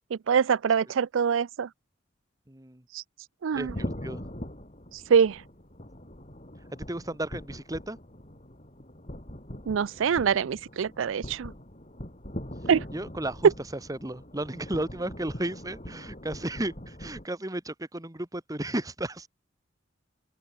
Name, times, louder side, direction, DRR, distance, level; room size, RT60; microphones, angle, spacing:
voice 1, 0.1-1.7 2.9-3.0 3.4-3.7 5.1-5.4 9.7-11.5 12.7-12.8, right 7 dB, 80° right, 0.4 m, -24 dB
voice 2, 2.5-2.8 3.5-4.2 6.9-8.0 12.9-13.5 13.9-19.3, right 1 dB, 20° right, 1.6 m, -34 dB
sound 1, 3.5-17.2, equal, 35° left, 6.0 m, -42 dB
open air
head